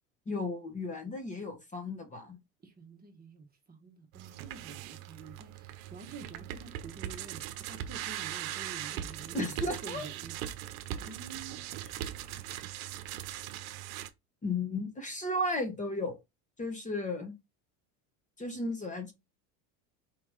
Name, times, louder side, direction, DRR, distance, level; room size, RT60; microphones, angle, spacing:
voice 1, 0.3-2.4 9.3-10.1 11.8-11.9 14.4-16.2 16.6-17.3 18.4-19.1, left 2 dB, 20° left, 1.3 m, -34 dB
voice 2, 2.6-7.4 7.7-10.3 11.0-11.6, right 4 dB, 20° right, 1.2 m, -48 dB
sound 1, 4.1-14.1, right 12 dB, 75° right, 0.8 m, -40 dB
4.7 x 2.9 x 3.7 m
supercardioid pair, 110°, 40 cm